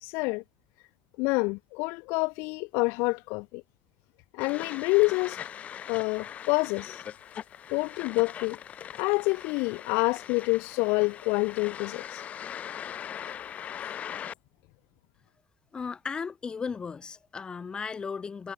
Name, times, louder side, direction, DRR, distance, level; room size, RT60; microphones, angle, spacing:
voice 1, 0.0-0.4 1.2-3.6 4.3-5.4 5.9-7.0 7.7-8.6 9.0-12.2, left 28 dB, 75° left, 0.4 m, -27 dB
sound 1, 4.4-14.3, left 9 dB, 40° left, 2.0 m, -41 dB
voice 2, 15.7-18.5, left 5 dB, 25° left, 2.8 m, -35 dB
cardioid pair, 120°, 4 cm